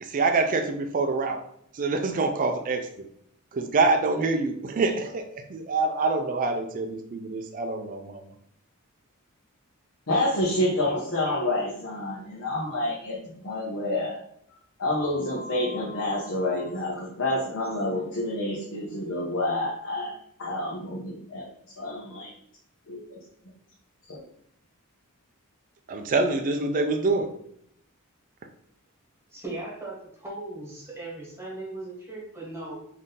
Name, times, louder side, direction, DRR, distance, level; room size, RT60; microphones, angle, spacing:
voice 1, 0.0-1.4 1.7-2.9 3.5-8.2 25.9-27.3, right 3 dB, 40° right, 5 dB, 0.4 m, -26 dB
voice 2, 10.1-14.2 14.8-20.1 20.4-21.4 21.8-22.3 22.9-23.2, left 1 dB, 60° left, -4 dB, 0.9 m, -28 dB
voice 3, 29.3-32.8, right 2 dB, 10° right, -4 dB, 1.3 m, -38 dB
3.6 x 2.7 x 3.8 m, 0.70 s
head